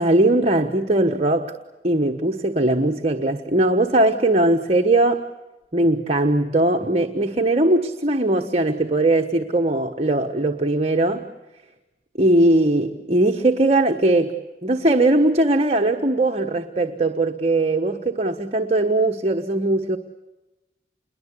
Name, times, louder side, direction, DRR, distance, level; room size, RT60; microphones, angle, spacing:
voice 1, 0.0-1.6 1.8-5.3 5.7-11.3 12.2-20.0, right 2 dB, 35° right, 4 dB, 1.3 m, -20 dB
29.0 x 22.5 x 8.4 m, 1.1 s
head